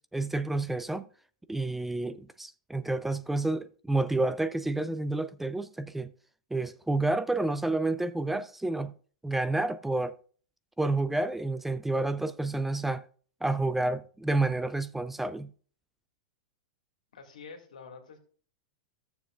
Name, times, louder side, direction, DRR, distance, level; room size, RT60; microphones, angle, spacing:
voice 1, 0.1-1.1 1.5-6.1 6.5-8.9 9.2-10.1 10.8-13.0 13.4-15.5, right 2 dB, 5° right, 0.4 m, -29 dB
voice 2, 17.1-18.2, left 5 dB, 85° left, 2.0 m, -47 dB
13.5 x 7.1 x 2.5 m
hypercardioid pair, 120°, 4 cm